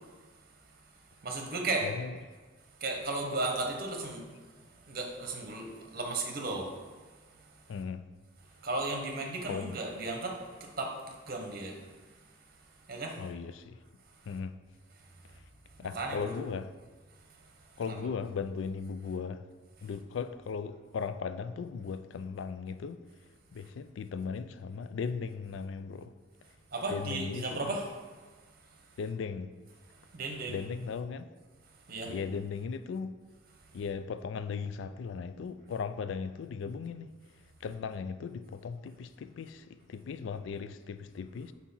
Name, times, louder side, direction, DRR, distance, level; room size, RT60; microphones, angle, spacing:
voice 1, 1.2-1.9 2.8-4.2 4.9-6.7 8.6-10.9 11.3-11.7 12.9-13.1 15.9-16.3 17.9-18.0 26.7-27.8 30.1-30.6 31.9-32.1, right 2 dB, 50° right, 0.9 m, -34 dB
voice 2, 1.8-2.2 7.7-8.1 9.5-9.8 13.2-13.8 14.3-14.5 15.8-16.7 17.8-19.4 19.8-23.0 23.5-26.1 26.9-27.7 29.0-29.5 30.5-31.3 32.0-33.2 33.7-37.1 37.6-41.5, left 5 dB, 70° left, 0.3 m, -37 dB
4.5 x 4.1 x 5.5 m
head